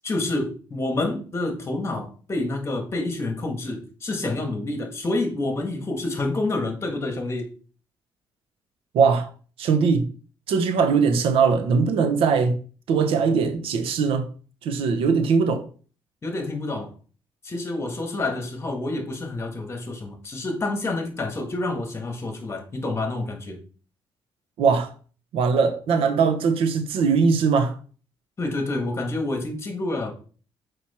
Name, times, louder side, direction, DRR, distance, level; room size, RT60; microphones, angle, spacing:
voice 1, 0.0-7.5 16.2-16.9 17.4-23.6 28.4-30.1, left 2 dB, 30° left, 1.7 m, -28 dB
voice 2, 8.9-9.3 9.6-10.1 10.5-12.6 12.9-14.3 14.6-15.6 24.6-24.9 25.3-27.8, right 5 dB, 80° right, 1.0 m, -20 dB
6.1 x 5.1 x 4.3 m
cardioid pair, 110°, 9 cm